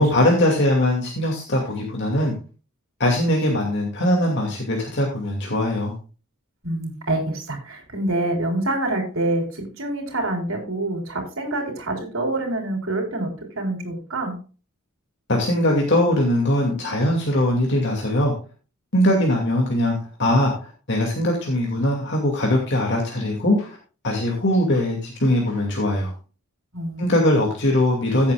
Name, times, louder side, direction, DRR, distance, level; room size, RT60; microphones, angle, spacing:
voice 1, 0.0-2.3 3.0-5.9 15.3-18.3 18.9-23.8 24.0-26.1 27.0-28.3, left 1 dB, 55° left, 0 dB, 2.4 m, -21 dB
voice 2, 6.6-13.3 13.6-14.4 26.7-27.2, right 2 dB, 65° right, 2 dB, 3.9 m, -26 dB
16.0 x 8.5 x 2.4 m, 0.36 s
head